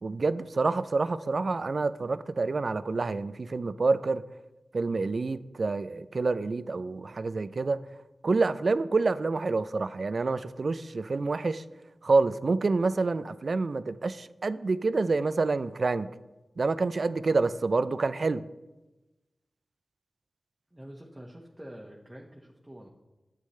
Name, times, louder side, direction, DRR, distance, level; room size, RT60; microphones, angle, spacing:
voice 1, 0.0-4.2 4.7-7.8 8.2-11.6 12.0-16.1 16.6-18.4, right 3 dB, 65° right, 0.4 m, -27 dB
voice 2, 20.7-22.9, equal, 15° right, 1.2 m, -46 dB
9.6 x 8.3 x 3.2 m
cardioid pair, 45°, 0 cm